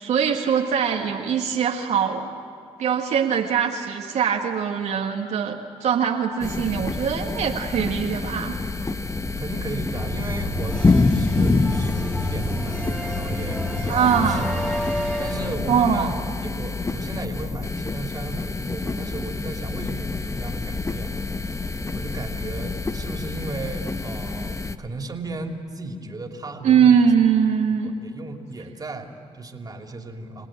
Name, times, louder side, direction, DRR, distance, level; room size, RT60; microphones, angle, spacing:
voice 1, 0.0-2.3 2.8-8.6 13.9-14.4 15.7-16.1 26.6-27.9, right 7 dB, 75° right, 0 dB, 1.6 m, -22 dB
sound 1, 6.4-24.8, left 3 dB, 25° left, 1.1 m, -27 dB
voice 2, 9.4-14.4 15.0-16.2 16.6-21.2 21.9-27.0 27.8-30.5, right 2 dB, 35° right, 3 dB, 2.8 m, -35 dB
sound 2, 9.9-15.5, equal, 5° left, 3.3 m, -29 dB
27.0 x 18.5 x 8.9 m, 2.2 s
supercardioid pair, 65°, 12 cm